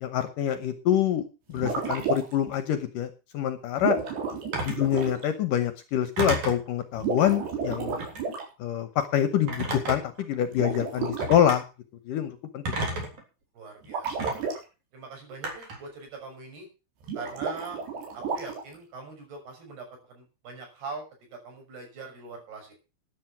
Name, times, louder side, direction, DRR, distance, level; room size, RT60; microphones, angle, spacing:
voice 1, 0.0-4.0 4.6-8.0 8.6-11.7 12.1-12.8, left 10 dB, 70° left, 10 dB, 2.3 m, -26 dB
sound 1, 1.5-2.5 3.8-5.2 6.9-8.5 10.5-11.3 13.8-14.6 17.0-18.8, right 5 dB, 90° right, 6.0 m, -31 dB
Telephone, 4.5-4.8 6.2-6.7 7.9-8.3 9.5-10.2 11.2-11.6 12.6-13.2 14.2-14.3 15.4-15.8, right 2 dB, 45° right, 4.8 m, -31 dB
voice 2, 10.6-11.0 13.5-14.5 14.9-16.7 17.1-17.8 18.1-21.0 21.3-22.7, right 4 dB, 75° right, 2 dB, 8.2 m, -42 dB
12.5 x 10.5 x 6.0 m, 0.32 s
omnidirectional pair, 4.7 m